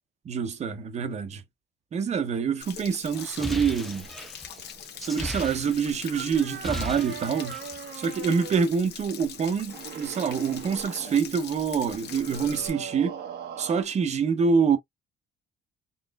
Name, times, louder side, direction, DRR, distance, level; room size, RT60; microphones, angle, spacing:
voice 1, 0.2-1.4 1.9-4.1 5.0-7.6 8.0-13.2 13.6-14.8, right 6 dB, 40° right, 0.9 m, -26 dB
Stream / Splash splatter / Trickle dribble, 2.6-12.7, left 8 dB, 65° left, 1.0 m, -43 dB
sound 1, 3.2-6.1 6.4-7.8, equal, ahead, 0.4 m, -36 dB
sound 2, 3.4-13.8, right 8 dB, 70° right, 1.0 m, -42 dB
4.0 x 3.1 x 2.3 m
cardioid pair, 155°, 18 cm